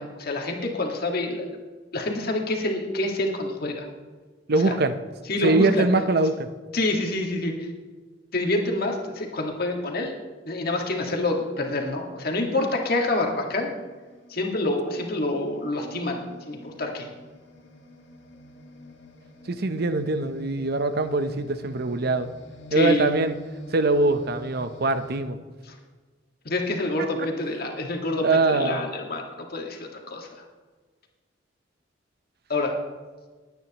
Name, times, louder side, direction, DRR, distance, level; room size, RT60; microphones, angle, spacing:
voice 1, 0.0-1.5 1.9-3.9 4.6-4.7 5.3-5.9 6.7-7.5 8.3-10.1 10.5-13.7 14.3-16.2 16.5-17.1 22.7-23.1 25.7-25.8 26.5-29.3 29.5-30.3 32.5-32.7, left 2 dB, 55° left, 1 dB, 1.8 m, -27 dB
voice 2, 4.5-5.0 5.4-6.5 19.5-22.3 22.7-23.4 23.7-25.4 28.2-28.8, right 3 dB, 55° right, 10 dB, 0.7 m, -23 dB
sound 1, 11.5-25.2, left 1 dB, 85° left, 2.4 m, -48 dB
20.5 x 9.3 x 3.0 m, 1.4 s
head